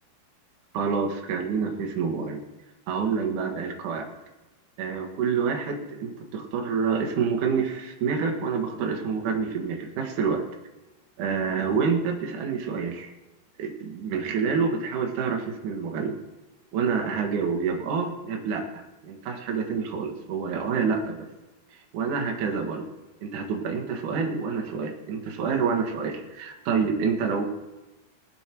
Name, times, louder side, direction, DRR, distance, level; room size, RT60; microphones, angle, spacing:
voice 1, 0.7-2.4 2.9-4.1 4.8-10.4 11.2-13.1 13.6-16.2 16.7-21.3 21.7-22.9 23.2-27.5, right 5 dB, 55° right, 2 dB, 2.6 m, -27 dB
19.5 x 7.6 x 4.6 m, 1.1 s
omnidirectional pair, 5.0 m